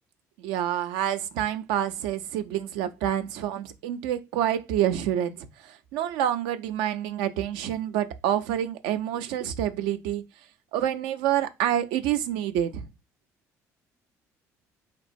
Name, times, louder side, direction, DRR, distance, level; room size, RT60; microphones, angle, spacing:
voice 1, 0.4-10.2 10.7-12.8, right 11 dB, 75° right, 0.4 m, -27 dB
4.2 x 2.9 x 2.6 m
hypercardioid pair, 55°, 8 cm